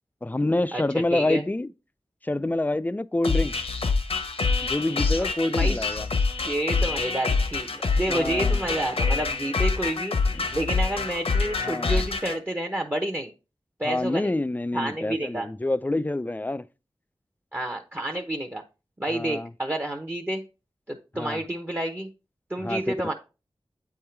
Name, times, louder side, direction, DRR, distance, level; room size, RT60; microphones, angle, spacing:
voice 1, 0.2-1.7 2.2-3.6 4.6-6.1 8.1-8.6 10.3-10.5 11.6-12.0 13.8-16.6 19.1-19.5 21.2-21.4 22.6-22.8, left 2 dB, 15° left, 0.3 m, -27 dB
voice 2, 0.7-1.4 5.2-5.9 6.4-10.2 10.5-13.3 13.8-14.3 14.7-15.5 17.5-18.6 19.0-20.4 20.9-22.1 22.5-23.1, right 1 dB, 20° right, 0.8 m, -29 dB
sound 1, 3.2-12.3, left 4 dB, 85° left, 1.0 m, -26 dB
8.6 x 3.6 x 4.4 m
wide cardioid pair, 80°, 10 cm